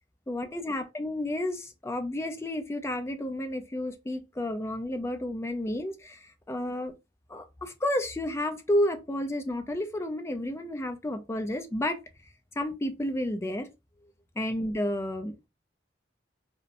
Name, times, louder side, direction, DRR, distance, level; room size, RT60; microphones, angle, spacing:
voice 1, 0.3-6.9 7.3-12.0 12.6-13.7 14.4-15.5, left 1 dB, 15° left, 0.3 m, -31 dB
2.8 x 2.0 x 2.5 m
head